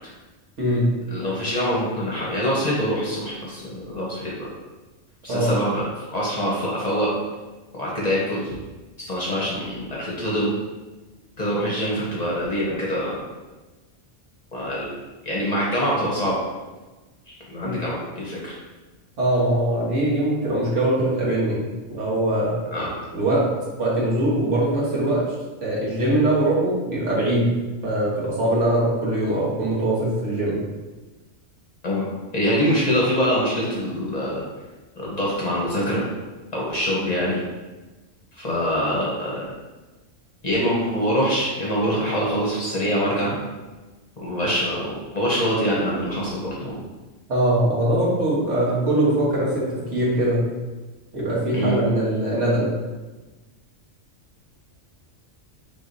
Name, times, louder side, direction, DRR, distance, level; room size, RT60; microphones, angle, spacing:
voice 1, 1.1-4.5 5.2-7.1 7.7-8.5 9.0-10.5 11.4-13.2 14.5-14.9 15.2-16.4 17.5-18.5 22.7-22.9 31.8-34.4 35.0-36.1 36.5-37.4 38.3-39.4 40.4-43.4 44.2-46.8 51.5-51.8, equal, 35° left, -5 dB, 0.9 m, -24 dB
voice 2, 19.2-22.6 23.1-23.4 23.8-25.2 25.6-27.5 27.8-30.6 47.3-50.5 51.1-52.8, right 1 dB, 70° right, -6 dB, 1.6 m, -22 dB
4.7 x 3.7 x 2.6 m, 1.2 s
omnidirectional pair, 1.3 m